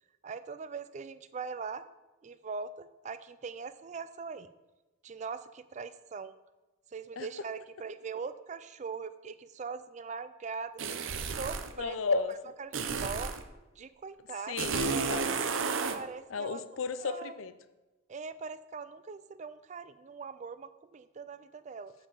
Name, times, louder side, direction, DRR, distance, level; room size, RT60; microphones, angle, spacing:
voice 1, 0.2-1.9 2.2-4.5 5.0-6.3 6.9-10.7 11.3-12.0 12.6-13.3 13.8-14.7 15.9-16.6 17.0-17.3 18.1-21.9, right 5 dB, 35° right, 13 dB, 0.4 m, -41 dB
sound 1, 10.8-11.7 12.7-13.4 14.6-16.0, right 5 dB, 75° right, 0.7 m, -32 dB
voice 2, 11.8-12.3 14.5-15.4 16.3-17.5, left 4 dB, 80° left, 12 dB, 0.6 m, -33 dB
6.6 x 5.6 x 6.8 m, 1.1 s
head